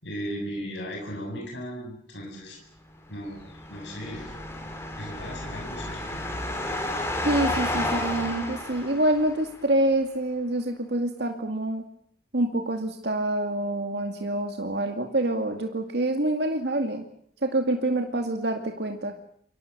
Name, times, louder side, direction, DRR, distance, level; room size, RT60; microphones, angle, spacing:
voice 1, 0.0-2.6 3.1-3.4 3.7-4.3 5.0-6.2, equal, 90° left, 0 dB, 7.5 m, -36 dB
sound 1, 3.2-9.6, left 1 dB, 15° left, 5.0 m, -32 dB
voice 2, 7.3-11.8 12.3-17.0 17.4-19.1, right 1 dB, 70° right, 4 dB, 2.3 m, -26 dB
28.5 x 24.0 x 6.9 m, 0.66 s
head